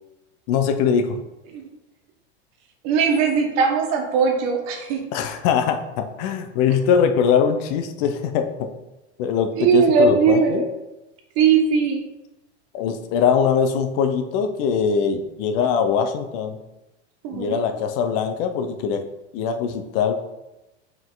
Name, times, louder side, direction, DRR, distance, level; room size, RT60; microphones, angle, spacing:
voice 1, 0.5-1.2 5.1-8.7 9.2-10.6 12.7-16.6 17.3-19.1 19.3-20.2, left 7 dB, 55° left, 7 dB, 0.9 m, -22 dB
voice 2, 2.8-5.0 9.6-10.7 11.3-12.0 17.2-17.6, right 6 dB, 50° right, 2 dB, 1.5 m, -19 dB
5.6 x 4.9 x 3.9 m, 0.99 s
supercardioid pair, 120°, 34 cm